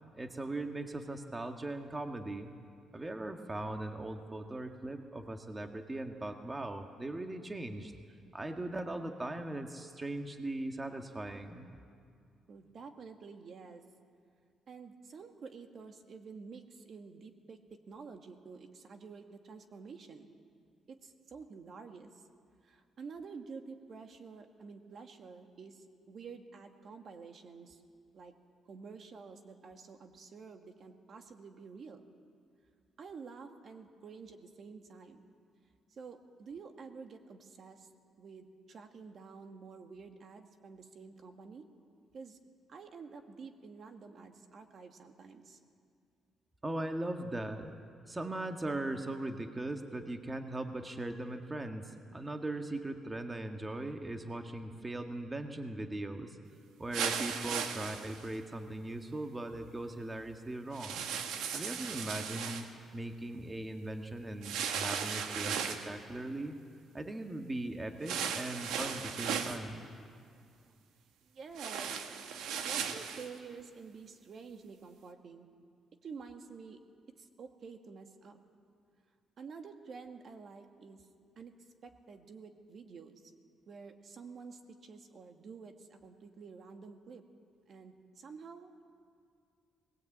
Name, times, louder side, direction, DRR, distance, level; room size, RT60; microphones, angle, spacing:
voice 1, 0.1-2.5 2.9-7.9 8.3-11.7 46.6-47.7 48.1-56.4 56.8-61.1 61.5-62.7 62.9-66.6 66.9-69.9, right 2 dB, 20° right, 5 dB, 1.6 m, -39 dB
voice 2, 12.5-13.8 14.7-20.3 20.9-22.2 22.6-27.8 28.1-28.3 28.7-32.1 33.0-35.2 35.9-37.9 38.2-41.6 42.1-42.4 42.7-45.6 70.6-70.8 71.2-75.5 76.0-76.8 77.2-78.4 79.4-81.0 81.4-81.5 81.8-83.3 83.7-87.2 87.7-88.8, right 5 dB, 55° right, 6 dB, 1.8 m, -50 dB
sound 1, 56.9-58.3 60.7-62.7 64.4-65.9 68.0-69.6 71.5-73.3, right 7 dB, 90° right, 1.6 m, -36 dB
21.0 x 19.5 x 8.7 m, 2.3 s
cardioid pair, 90°, 0 cm